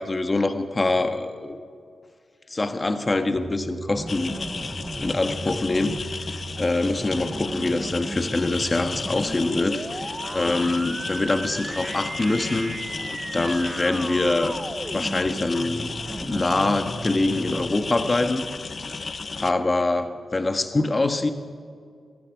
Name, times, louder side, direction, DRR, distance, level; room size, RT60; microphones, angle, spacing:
voice 1, 0.0-1.6 2.5-4.3 5.0-6.3 6.6-12.7 13.3-14.5 14.9-15.9 16.2-18.4 19.4-21.3, left 2 dB, 35° left, 8 dB, 1.4 m, -24 dB
sound 1, 3.3-17.7, right 2 dB, 25° right, 0.7 m, -36 dB
sound 2, 4.1-19.5, left 4 dB, 55° left, 0.7 m, -34 dB
19.0 x 14.0 x 4.9 m, 2.2 s
supercardioid pair, 40°, 0 cm